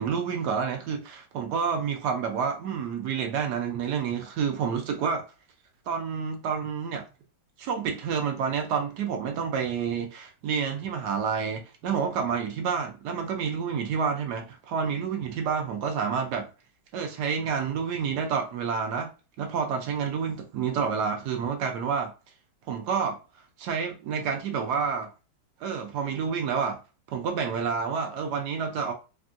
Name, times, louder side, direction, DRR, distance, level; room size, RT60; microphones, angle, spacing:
voice 1, 0.0-5.2 5.9-7.0 7.6-16.5 16.9-19.1 19.4-22.1 22.7-23.2 23.6-25.1 25.6-26.8 27.1-28.9, right 6 dB, 70° right, 1.1 m, -29 dB
3.4 x 2.3 x 2.5 m
omnidirectional pair, 2.2 m